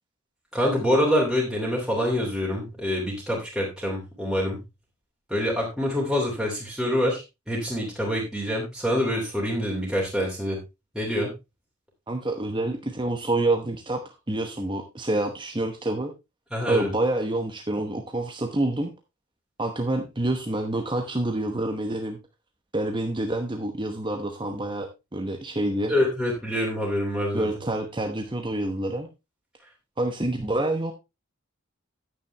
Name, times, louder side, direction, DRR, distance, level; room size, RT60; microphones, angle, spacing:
voice 1, 0.5-4.6 5.3-7.2 7.5-10.6 10.9-11.3 16.5-16.9 25.9-27.5, left 1 dB, 5° right, -4 dB, 2.8 m, -26 dB
voice 2, 12.1-14.0 14.3-16.1 16.7-18.9 19.6-22.2 22.7-25.9 27.3-29.1 30.0-30.9, right 2 dB, 20° right, 4 dB, 0.9 m, -27 dB
10.0 x 8.8 x 3.3 m, 0.25 s
head